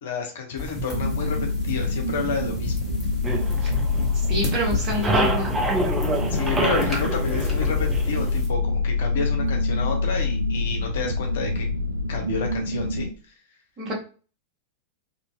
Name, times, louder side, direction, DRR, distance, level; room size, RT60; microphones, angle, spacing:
voice 1, 0.0-1.4 1.6-2.9 6.3-11.7 12.1-13.1, left 5 dB, 60° left, 2 dB, 0.7 m, -30 dB
sound 1, 0.6-8.5, left 3 dB, 10° left, 1.0 m, -31 dB
sound 2, 0.9-13.1, left 3 dB, 70° right, 0.3 m, -26 dB
sound 3, 3.2-4.4 4.7-8.4, right 3 dB, 15° right, 0.6 m, -27 dB
voice 2, 4.3-5.6 13.8-13.9, left 1 dB, 30° right, -4 dB, 1.4 m, -27 dB
2.7 x 2.6 x 2.2 m, 0.37 s
figure-of-eight pair, 90°, 0 cm